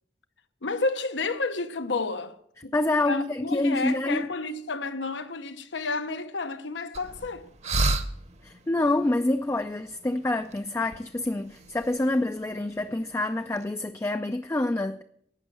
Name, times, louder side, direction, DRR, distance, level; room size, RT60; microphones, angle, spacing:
voice 1, 0.6-2.4 2.6-2.7 3.1-7.5, left 3 dB, 90° left, 1.0 m, -31 dB
voice 2, 2.7-4.3 8.4-15.0, left 2 dB, 15° left, 0.4 m, -27 dB
sound 1, 6.9-13.7, right 2 dB, 40° right, 0.9 m, -35 dB
11.5 x 7.9 x 7.6 m
head